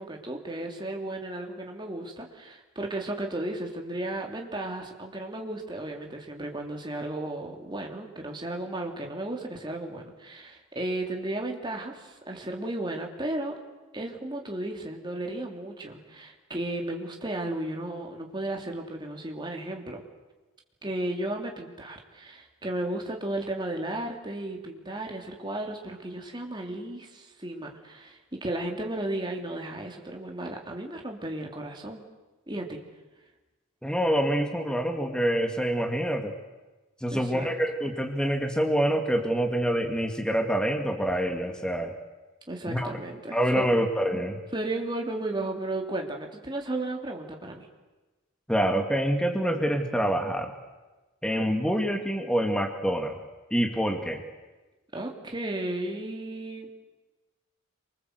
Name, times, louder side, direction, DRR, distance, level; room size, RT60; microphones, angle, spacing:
voice 1, 0.0-13.6 13.9-20.0 20.8-32.0 32.5-32.8 37.1-37.5 42.5-43.6 44.5-47.7 54.9-56.8, right 1 dB, 20° right, 2 dB, 3.1 m, -34 dB
voice 2, 33.8-36.3 37.0-42.0 42.7-42.9 43.3-44.4 48.5-50.5 51.2-53.2 53.5-54.2, equal, 5° left, 4 dB, 2.1 m, -26 dB
27.0 x 24.5 x 8.1 m, 1.2 s
head